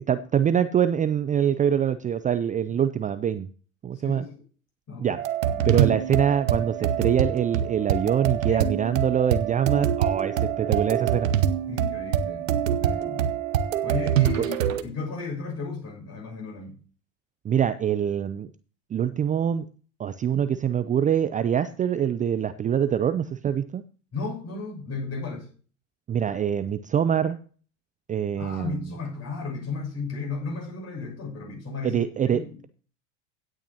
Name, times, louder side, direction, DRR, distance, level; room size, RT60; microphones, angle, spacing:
voice 1, 0.0-3.5 3.8-4.3 5.0-5.2 5.6-11.3 14.4-14.5 17.4-18.5 18.9-19.7 20.0-23.8 26.1-27.4 28.1-28.9 31.8-32.7, right 9 dB, 20° right, 0.5 m, -24 dB
voice 2, 4.0-4.4 4.9-5.2 5.5-5.8 6.2-6.3 6.5-6.6 8.5-8.7 11.7-13.3 13.8-16.8 24.1-25.5 28.4-32.5, left 4 dB, 40° left, 6.5 m, -35 dB
sound 1, 5.2-14.8, right 9 dB, 80° right, 0.9 m, -25 dB
16.5 x 9.0 x 2.9 m
hypercardioid pair, 85°, 39 cm